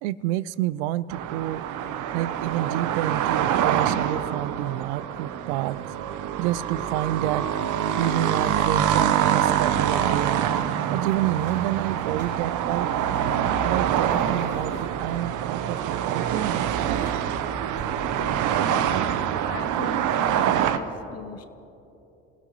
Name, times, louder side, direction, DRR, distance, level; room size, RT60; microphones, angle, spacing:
voice 1, 0.0-1.6 2.1-5.9 6.4-7.5 8.0-10.5 10.9-12.9 13.6-16.7, right 14 dB, 80° right, 18 dB, 0.5 m, -29 dB
sound 1, 1.1-20.8, right 9 dB, 60° right, 0.9 m, -25 dB
sound 2, 7.6-8.8 10.8-12.7 14.1-15.2 16.4-18.4, right 1 dB, 30° right, 4.2 m, -47 dB
voice 2, 18.2-19.2 19.5-21.4, left 5 dB, 45° left, 10 dB, 1.1 m, -40 dB
25.5 x 16.5 x 3.1 m, 2.9 s
hypercardioid pair, 60°, 34 cm